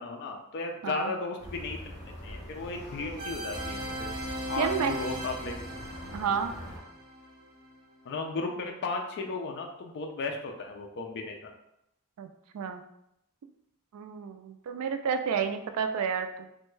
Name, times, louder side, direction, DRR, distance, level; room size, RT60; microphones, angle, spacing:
voice 1, 0.0-4.1 4.5-5.5 8.1-11.5, left 3 dB, 50° left, 2 dB, 0.4 m, -35 dB
voice 2, 0.8-1.1 4.6-4.9 6.1-6.5 12.2-12.3 12.5-12.8 13.9-16.5, right 6 dB, 75° right, 8 dB, 0.3 m, -30 dB
sound 1, 1.4-6.8, equal, 30° left, 0.8 m, -43 dB
sound 2, 3.2-7.8, right 1 dB, 20° right, 0.9 m, -38 dB
3.3 x 2.2 x 3.1 m, 0.81 s
head